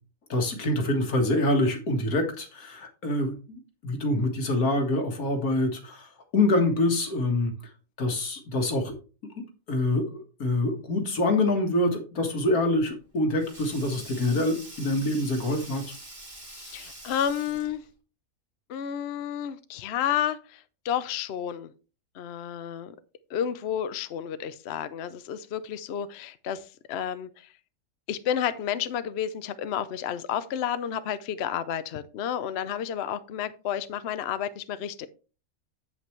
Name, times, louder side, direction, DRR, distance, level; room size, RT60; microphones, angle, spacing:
voice 1, 0.3-7.5 8.0-9.0 9.7-15.8, left 1 dB, 90° left, 4 dB, 2.1 m, -26 dB
Sink (filling or washing), 12.7-17.9, right 1 dB, 25° right, 2.2 m, -45 dB
voice 2, 16.5-17.8 18.7-21.7 22.1-22.9 23.3-27.5 28.1-35.1, left 9 dB, 55° left, 13 dB, 0.8 m, -31 dB
8.3 x 8.1 x 3.2 m, 0.34 s
omnidirectional pair, 1.5 m